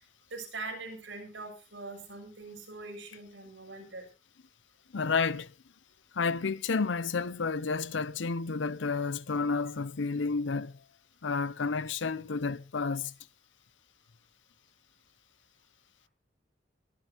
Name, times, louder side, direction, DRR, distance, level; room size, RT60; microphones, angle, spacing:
voice 1, 0.3-4.0, right 3 dB, 70° right, 6.9 m, -42 dB
voice 2, 4.9-5.5 6.1-10.8 11.2-13.1, left 4 dB, 75° left, 0.6 m, -31 dB
23.0 x 11.0 x 2.9 m
head